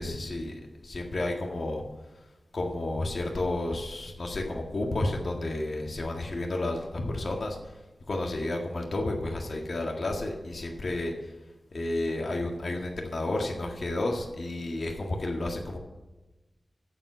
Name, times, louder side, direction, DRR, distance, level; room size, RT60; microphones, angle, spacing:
voice 1, 0.0-1.8 2.5-7.6 8.1-11.3 11.7-15.8, left 2 dB, 60° left, 1 dB, 1.7 m, -31 dB
14.5 x 4.9 x 7.9 m, 1.1 s
cardioid pair, 50°, 0 cm